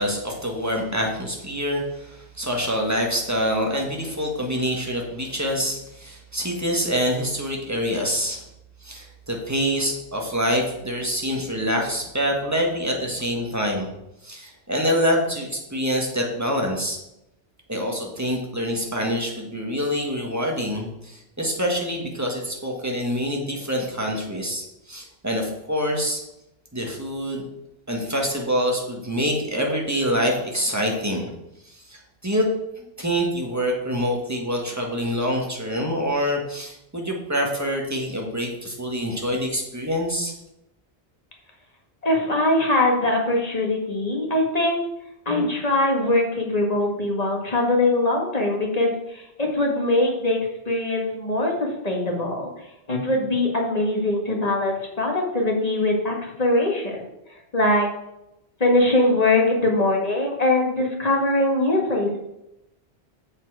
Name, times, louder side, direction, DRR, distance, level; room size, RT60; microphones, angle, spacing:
voice 1, 0.0-8.4 8.8-13.9 14.2-17.0 17.7-26.2 26.7-27.4 27.9-31.3 31.6-32.5 32.8-40.3, equal, 15° right, 0 dB, 1.6 m, -26 dB
voice 2, 42.0-44.8 45.3-50.4 50.7-52.5 52.9-57.1 57.5-57.9 58.6-62.2, left 2 dB, 40° left, 0 dB, 1.8 m, -22 dB
7.4 x 6.9 x 4.8 m, 0.86 s
omnidirectional pair, 1.1 m